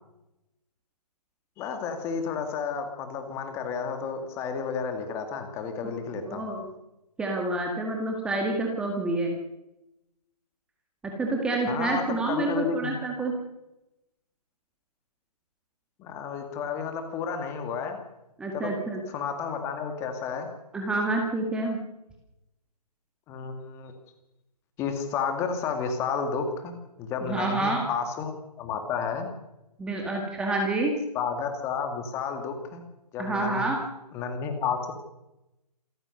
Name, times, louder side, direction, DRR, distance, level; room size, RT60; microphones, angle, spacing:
voice 1, 1.6-6.5 11.7-12.9 16.0-18.0 18.5-18.8 19.1-20.5 23.3-23.9 24.8-28.3 28.6-29.3 31.1-32.8 33.1-33.7 34.1-34.9, left 6 dB, 15° left, 6 dB, 2.2 m, -31 dB
voice 2, 6.3-6.7 7.2-9.3 11.0-13.4 18.4-19.0 20.7-21.8 27.2-27.8 29.8-31.0 33.2-33.8, right 2 dB, 5° right, 1 dB, 1.8 m, -28 dB
27.5 x 15.0 x 6.7 m, 0.92 s
figure-of-eight pair, 155°, 21 cm